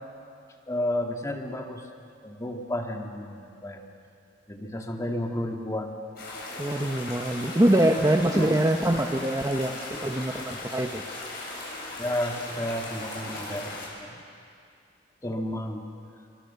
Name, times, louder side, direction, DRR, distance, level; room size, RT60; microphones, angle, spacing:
voice 1, 0.7-1.8 2.2-3.8 4.5-5.9 8.3-8.6 10.3-10.4 12.0-14.1 15.2-15.9, left 1 dB, 20° left, 2 dB, 2.1 m, -32 dB
sound 1, 6.2-13.9, left 2 dB, 60° left, 8.0 m, -38 dB
voice 2, 6.6-11.0, right 1 dB, 20° right, 4 dB, 0.9 m, -24 dB
28.0 x 24.0 x 7.0 m, 2.4 s
head